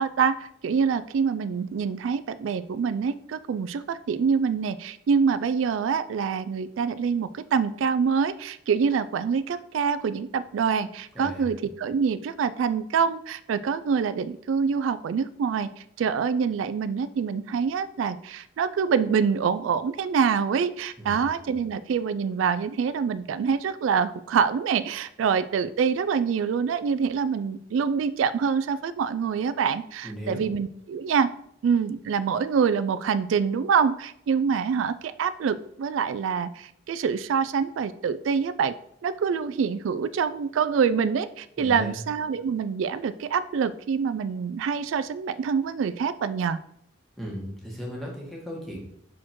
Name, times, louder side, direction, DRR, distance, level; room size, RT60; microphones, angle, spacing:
voice 1, 0.0-31.3 31.6-38.7 39.0-46.6, right 6 dB, 80° right, 14 dB, 0.3 m, -25 dB
voice 2, 11.1-11.5 21.0-21.2 30.0-30.5 41.6-42.0 47.2-48.8, equal, ahead, -4 dB, 1.5 m, -36 dB
5.8 x 4.3 x 4.5 m, 0.72 s
head